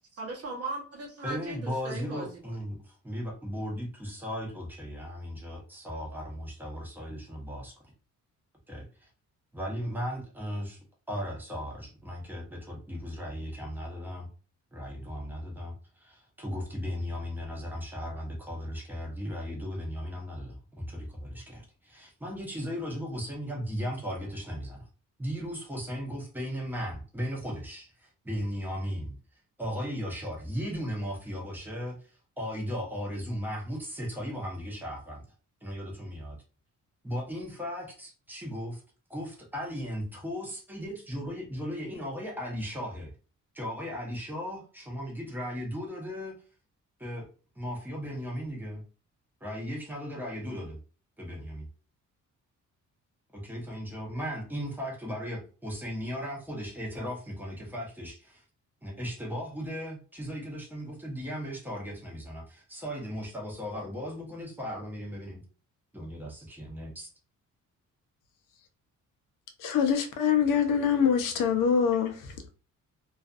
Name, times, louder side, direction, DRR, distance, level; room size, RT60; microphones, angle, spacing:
voice 1, 0.1-2.4, right 2 dB, 50° right, 0.9 m, -38 dB
voice 2, 1.2-7.8 8.7-9.1 9.5-14.3 14.7-24.8 25.2-29.1 29.6-35.2 35.6-36.4 37.0-38.8 39.1-43.1 43.5-46.3 47.0-47.3 47.6-48.8 49.4-50.8 51.2-51.7 53.3-58.4 58.8-65.4 65.9-67.1, equal, 5° right, 0.8 m, -36 dB
voice 3, 69.6-72.2, left 7 dB, 80° left, 0.6 m, -24 dB
2.4 x 2.4 x 2.4 m
cardioid pair, 130°, 31 cm